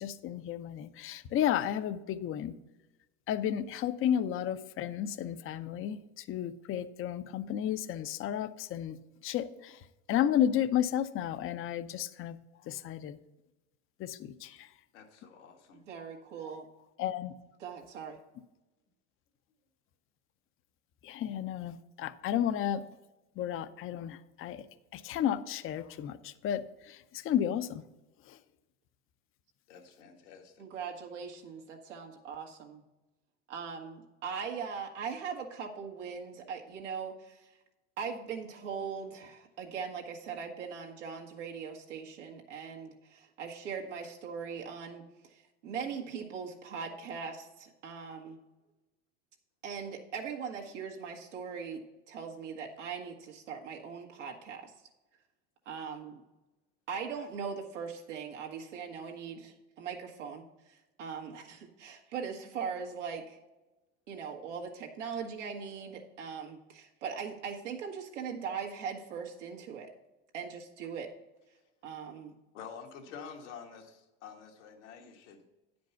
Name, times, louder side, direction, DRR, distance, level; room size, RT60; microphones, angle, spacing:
voice 1, 0.0-2.5 3.3-9.0 9.2-12.4 12.7-13.2 14.0-14.7 17.0-17.3 21.0-22.9 23.4-24.7 24.9-27.8 28.3-28.4, left 10 dB, 35° left, 12 dB, 0.6 m, -32 dB
voice 2, 14.9-15.8 29.7-30.7 72.5-75.4, left 6 dB, 85° left, 1 dB, 1.7 m, -48 dB
voice 3, 15.9-16.7 17.6-18.2 30.6-32.8 33.5-37.5 38.0-48.4 49.6-51.8 52.1-54.7 55.7-56.2 56.9-60.4 60.7-63.4 64.1-69.9 70.3-71.1 71.8-72.4, right 6 dB, 90° right, 1 dB, 1.6 m, -40 dB
9.9 x 5.2 x 5.7 m, 1.1 s
hypercardioid pair, 95°, 35 cm